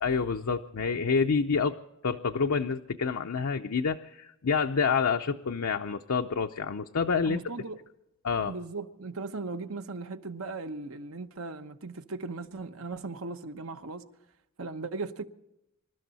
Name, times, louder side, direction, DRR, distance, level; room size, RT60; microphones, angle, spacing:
voice 1, 0.0-1.8 2.0-7.4 8.2-8.5, left 5 dB, 70° left, 0.6 m, -28 dB
voice 2, 7.2-7.8 8.4-14.1 14.6-15.2, right 3 dB, 70° right, 1.0 m, -38 dB
25.5 x 13.0 x 4.1 m
head